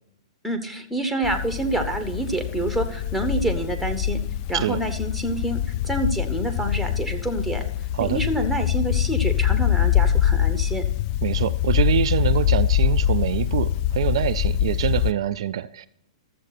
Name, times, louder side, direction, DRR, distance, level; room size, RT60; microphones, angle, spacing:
voice 1, 0.4-4.2 4.5-7.6 8.0-10.9, right 1 dB, ahead, 7 dB, 1.2 m, -27 dB
sound 1, 1.2-15.1, left 11 dB, 40° left, 0.4 m, -24 dB
voice 2, 11.2-15.9, right 10 dB, 60° right, 11 dB, 0.4 m, -25 dB
13.0 x 7.5 x 4.1 m, 0.79 s
hypercardioid pair, 115°, 3 cm